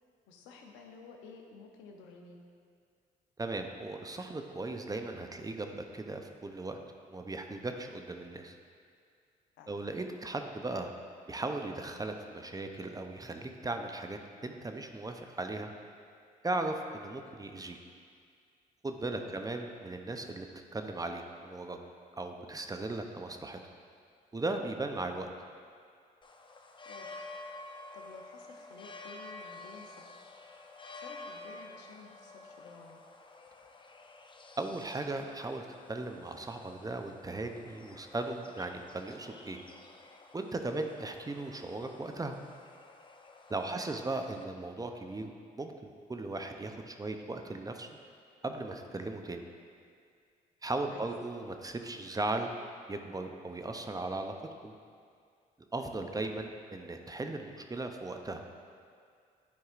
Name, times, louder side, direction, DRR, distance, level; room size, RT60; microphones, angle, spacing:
voice 1, 0.3-2.4 9.6-9.8 19.1-19.5 26.8-27.3 27.9-30.1 30.9-33.0 43.6-43.8 50.9-51.1, left 4 dB, 85° left, 2 dB, 0.7 m, -52 dB
voice 2, 3.4-6.8 7.1-8.6 9.7-10.9 11.3-15.7 16.4-17.8 18.8-20.5 20.7-21.8 22.2-23.6 24.3-25.3 34.6-39.6 40.3-42.4 43.5-47.9 48.4-49.4 50.6-52.5 52.9-54.3 54.6-54.7 55.7-58.4, right 2 dB, 20° right, 5 dB, 0.6 m, -37 dB
sound 1, 26.2-44.4, left 2 dB, 25° left, 0.6 m, -51 dB
10.5 x 4.6 x 2.5 m, 2.2 s
supercardioid pair, 55°, 19 cm